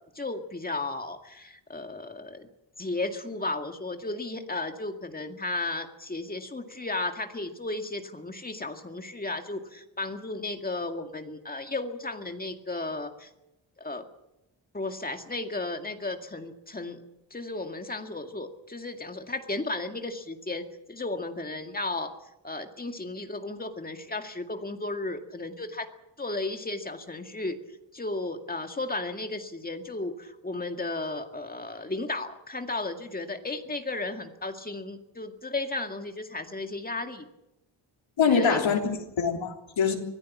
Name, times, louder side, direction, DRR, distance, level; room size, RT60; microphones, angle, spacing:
voice 1, 0.0-2.5 2.8-13.3 13.8-14.0 14.7-17.0 17.3-22.1 22.4-25.9 26.2-27.6 27.9-37.3 38.3-38.6, left 2 dB, 20° left, 5 dB, 2.1 m, -34 dB
voice 2, 38.2-40.0, left 6 dB, 85° left, 2 dB, 3.5 m, -24 dB
25.5 x 17.5 x 7.3 m, 0.90 s
wide cardioid pair, 125°, 45 cm